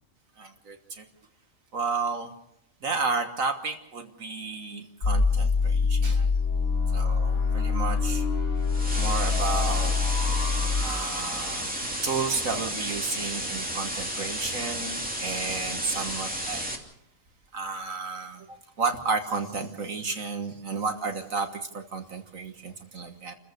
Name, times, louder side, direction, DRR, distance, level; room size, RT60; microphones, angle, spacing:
voice 1, 0.4-1.1 1.7-2.3 2.8-6.3 6.9-8.3 9.0-10.0 10.5-11.7 12.0-16.7 17.5-23.3, right 4 dB, 70° right, 5 dB, 1.8 m, -32 dB
sound 1, 5.0-12.0, left 4 dB, 75° left, 3.7 m, -25 dB
sound 2, 8.7-16.7, equal, 5° right, 2.7 m, -32 dB
29.0 x 15.0 x 6.7 m, 0.80 s
omnidirectional pair, 1.5 m